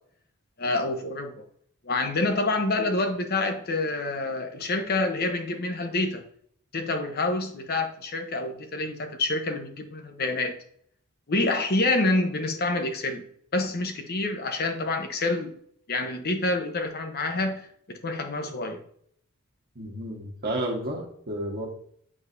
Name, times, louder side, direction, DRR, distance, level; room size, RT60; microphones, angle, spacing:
voice 1, 0.6-1.3 1.8-6.2 6.7-10.5 11.3-13.2 13.5-15.5 15.9-18.8, left 2 dB, 45° left, 5 dB, 1.0 m, -27 dB
voice 2, 19.7-21.7, right 1 dB, 45° right, -1 dB, 1.5 m, -31 dB
8.6 x 4.8 x 2.7 m, 0.63 s
head